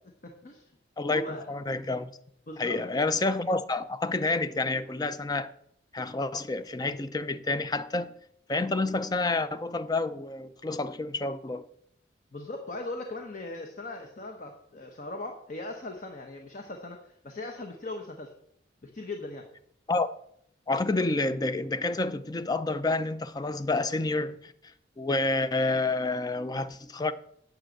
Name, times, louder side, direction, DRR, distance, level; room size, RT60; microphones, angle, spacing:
voice 1, 0.2-0.7 1.1-1.5 2.5-3.0 12.3-18.3 18.8-19.4, left 2 dB, 45° left, 1.0 m, -39 dB
voice 2, 1.0-2.1 2.6-5.5 5.9-8.1 8.5-11.6 19.9-20.1 20.7-24.5 25.0-27.1, left 2 dB, 20° left, 0.5 m, -29 dB
8.8 x 5.2 x 7.8 m
head